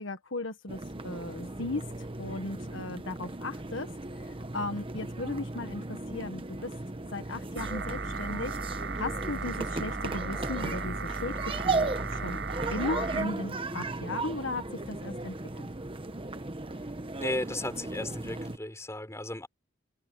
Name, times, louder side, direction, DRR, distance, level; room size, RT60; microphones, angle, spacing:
voice 1, 0.0-1.8 2.2-3.9 4.2-6.7 7.1-12.4 12.7-15.7, left 2 dB, 65° left, 1.6 m, -36 dB
sound 1, 0.7-18.6, right 2 dB, 25° right, 1.1 m, -36 dB
sound 2, 7.6-13.3, right 4 dB, 60° right, 5.9 m, -36 dB
voice 2, 17.2-19.5, left 1 dB, 15° left, 6.0 m, -34 dB
head